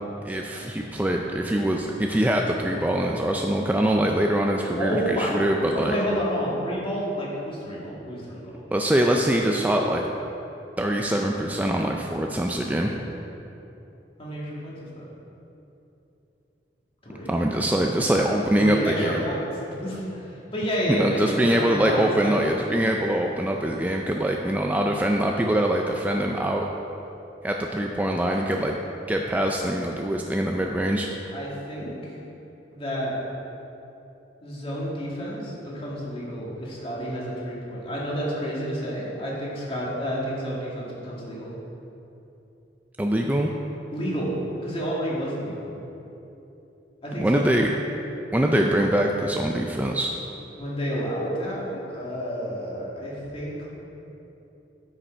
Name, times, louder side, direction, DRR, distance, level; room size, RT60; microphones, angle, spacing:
voice 1, 0.2-5.9 8.7-10.0 10.8-12.9 17.3-19.2 20.9-26.7 27.4-28.8 29.1-31.1 43.0-43.5 47.2-47.7 48.3-50.1, right 1 dB, 10° right, 1 dB, 0.4 m, -23 dB
voice 2, 4.8-5.3 5.7-8.6 14.2-15.1 17.0-17.3 18.5-19.4 19.7-22.4 31.3-32.2 32.7-33.2 34.4-41.5 43.9-44.3 44.6-45.8 47.0-47.5 50.6-53.7, equal, 30° left, -5 dB, 2.1 m, -30 dB
9.9 x 6.5 x 4.5 m, 3.0 s
head